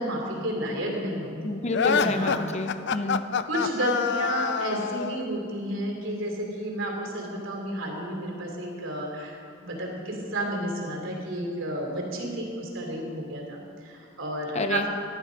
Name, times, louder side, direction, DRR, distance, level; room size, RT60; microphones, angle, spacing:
voice 1, 0.0-1.5 1.9-2.4 3.5-14.9, right 1 dB, 75° right, 0 dB, 3.3 m, -31 dB
voice 2, 1.4-3.2 14.5-14.8, left 2 dB, 35° left, 7 dB, 0.8 m, -29 dB
sound 1, 1.7-5.3, left 6 dB, 60° left, 0.5 m, -26 dB
19.0 x 12.0 x 5.3 m, 2.5 s
head